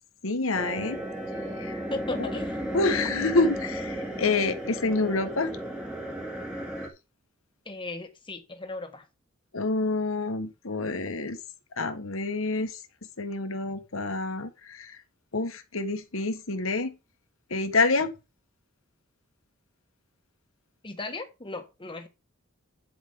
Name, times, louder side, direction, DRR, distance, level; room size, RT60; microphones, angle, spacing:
voice 1, 0.2-1.0 1.6-1.8 2.2-2.3 2.7-5.5 9.5-11.4 11.8-12.8 13.2-15.0 15.3-17.0 17.5-18.1, left 3 dB, 70° left, 1.5 m, -27 dB
sound 1, 0.5-6.9, right 1 dB, 5° right, 2.2 m, -34 dB
voice 2, 1.9-2.6 7.6-9.0 20.8-22.1, left 2 dB, 25° left, 1.6 m, -36 dB
9.3 x 8.1 x 3.8 m
head